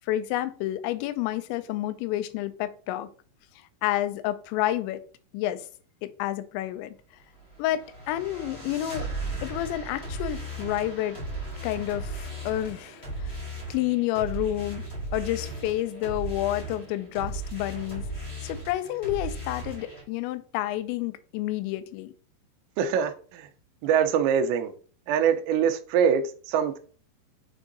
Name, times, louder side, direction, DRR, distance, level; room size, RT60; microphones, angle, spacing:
voice 1, 0.1-3.1 3.8-5.0 5.3-5.7 6.0-7.0 7.6-9.1 9.4-11.2 11.6-13.4 13.7-14.8 15.1-18.0 18.4-22.1, left 14 dB, 90° left, 2.9 m, -29 dB
sound 1, 7.3-20.0, right 1 dB, 25° left, 1.4 m, -36 dB
voice 2, 22.8-23.5 23.8-24.7 25.1-26.8, right 7 dB, 80° right, 2.9 m, -24 dB
7.1 x 3.6 x 3.9 m
omnidirectional pair, 5.1 m